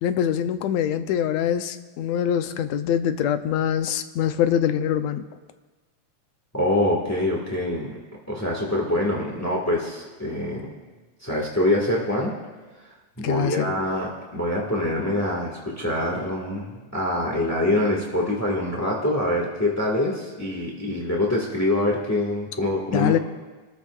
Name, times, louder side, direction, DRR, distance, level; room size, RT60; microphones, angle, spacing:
voice 1, 0.0-5.3 13.2-13.7 22.9-23.2, left 9 dB, 75° left, 9 dB, 1.7 m, -24 dB
voice 2, 6.5-8.0 8.3-10.7 11.2-12.3 13.2-23.2, left 1 dB, 10° left, -3 dB, 0.8 m, -25 dB
30.0 x 13.5 x 2.4 m, 1.3 s
omnidirectional pair, 3.4 m